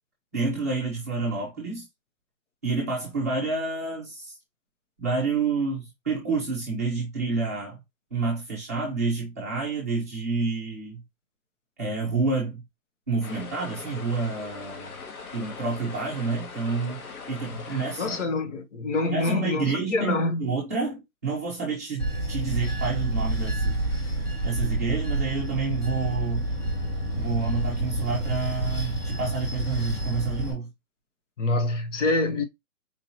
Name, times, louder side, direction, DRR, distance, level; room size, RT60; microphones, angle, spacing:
voice 1, 0.3-1.8 2.6-4.4 5.0-7.8 8.1-11.0 11.8-12.6 13.1-15.0 15.3-17.0 17.3-18.2 19.0-23.8 24.4-26.5 27.2-30.7, right 4 dB, 10° right, 0.7 m, -29 dB
sound 1, 13.2-18.2, left 5 dB, 80° left, 1.6 m, -41 dB
voice 2, 17.5-20.4 31.4-32.4, left 2 dB, 55° left, 0.8 m, -26 dB
Bell / Train, 22.0-30.5, right 1 dB, 20° left, 0.8 m, -28 dB
4.5 x 2.9 x 2.7 m
hypercardioid pair, 170°, 43 cm